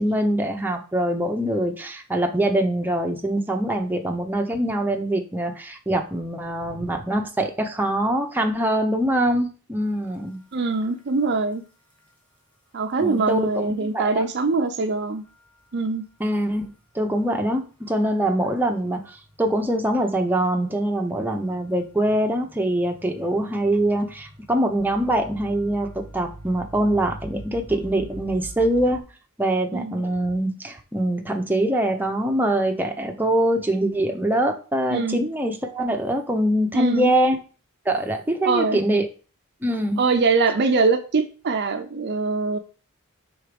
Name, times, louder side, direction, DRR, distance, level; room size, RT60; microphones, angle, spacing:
voice 1, 0.0-10.4 13.0-14.2 16.2-16.7 16.9-17.6 17.9-29.0 29.4-37.4 37.9-39.1 39.6-40.0, right 1 dB, 10° right, 3 dB, 0.7 m, -23 dB
sound 1, 10.3-10.4 11.0-11.1 12.0-12.1 15.2-15.6 17.2-17.3 18.0-29.0, right 1 dB, 5° left, 1.5 m, -43 dB
voice 2, 10.5-11.6 12.7-15.2 15.7-16.1 29.7-30.0 34.9-35.2 36.7-37.1 38.4-38.8 40.0-42.6, right 4 dB, 50° right, 6 dB, 0.5 m, -23 dB
4.6 x 3.9 x 5.1 m, 0.37 s
head